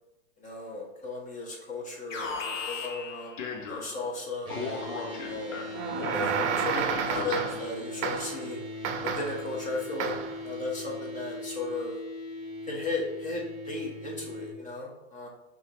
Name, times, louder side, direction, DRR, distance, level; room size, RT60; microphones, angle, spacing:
voice 1, 0.4-3.4 3.7-5.6 5.9-8.6 9.1-10.1 10.4-12.0 12.7-15.3, left 3 dB, 20° left, -1 dB, 1.1 m, -36 dB
Alarm, 2.1-4.1 4.5-7.7, left 4 dB, 80° left, 1.0 m, -37 dB
sound 1, 4.4-14.5, left 1 dB, 15° right, 1.2 m, -40 dB
sound 2, 5.7-7.7 8.0-8.4 8.8-9.5 10.0-10.4, right 7 dB, 65° right, 0.6 m, -31 dB
5.5 x 2.7 x 3.0 m, 0.90 s
hypercardioid pair, 110°, 38 cm